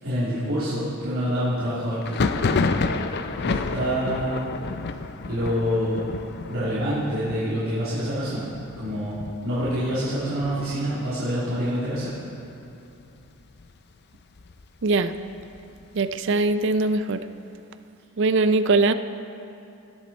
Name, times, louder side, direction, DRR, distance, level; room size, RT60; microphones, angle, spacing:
voice 1, 0.0-2.5 3.4-4.4 5.3-6.1 6.5-8.5 8.8-9.2 9.4-12.1, equal, 75° right, -13 dB, 3.0 m, -26 dB
Thunder, 2.0-11.5 11.8-12.5 12.7-13.7 14.1-15.8, left 4 dB, 50° left, 0.5 m, -30 dB
voice 2, 15.9-17.2 18.2-18.9, right 3 dB, 60° right, 11 dB, 0.5 m, -21 dB
18.5 x 7.5 x 4.3 m, 2.7 s
head